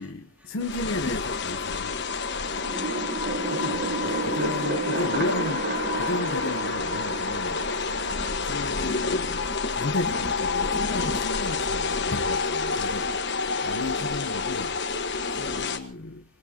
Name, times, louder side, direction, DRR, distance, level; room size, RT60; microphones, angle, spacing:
voice 1, 0.0-1.9 3.5-5.7 6.0-7.6 8.4-9.5 9.8-13.0 13.7-14.7 15.4-16.2, left 2 dB, 70° left, 0.8 m, -34 dB
sound 1, 0.6-15.8, left 4 dB, 55° left, 1.3 m, -28 dB
sound 2, 2.5-9.1, right 3 dB, 45° right, 1.0 m, -32 dB
voice 2, 2.6-3.6 8.0-8.4 13.5-14.1 15.2-15.5, left 2 dB, 5° right, 3.4 m, -47 dB
26.5 x 18.0 x 2.8 m
head